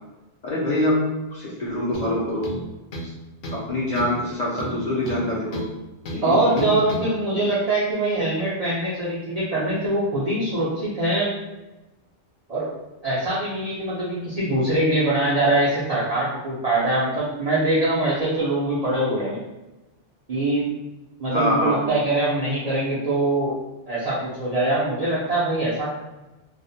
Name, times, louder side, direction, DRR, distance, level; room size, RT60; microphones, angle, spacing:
voice 1, 0.4-1.1 1.3-2.5 3.0-3.1 3.5-5.6 6.1-6.8 21.3-21.8, left 1 dB, 50° left, -7 dB, 0.5 m, -25 dB
sound 1, 1.9-2.1 2.4-3.2 3.4-3.7 4.0-4.2 4.6-5.7 6.1-6.2 6.6-7.1, equal, 75° left, 0.9 m, -33 dB
voice 2, 6.2-11.3 12.5-12.7 13.0-19.4 20.3-20.7 21.2-23.6 23.9-25.9, right 2 dB, 55° right, -8 dB, 0.4 m, -23 dB
2.4 x 2.0 x 2.6 m, 1.0 s
omnidirectional pair, 1.2 m